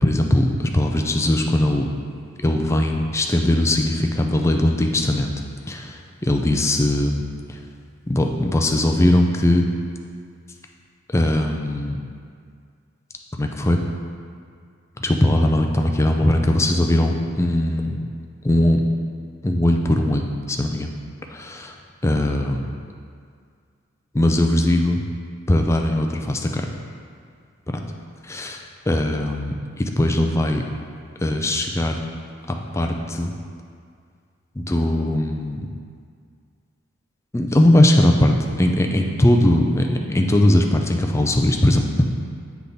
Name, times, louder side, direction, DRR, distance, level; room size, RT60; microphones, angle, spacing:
voice 1, 0.0-1.9 2.4-5.3 5.7-7.2 7.5-7.6 8.1-9.7 11.1-12.0 13.4-13.8 15.0-18.0 18.4-18.9 19.4-20.9 21.3-21.8 22.0-22.7 24.1-25.0 25.5-26.7 28.3-30.6 31.2-32.0 32.5-33.3 34.6-35.7 37.3-41.9, left 1 dB, 15° left, 3 dB, 0.3 m, -20 dB
8.2 x 3.5 x 3.9 m, 2.2 s
head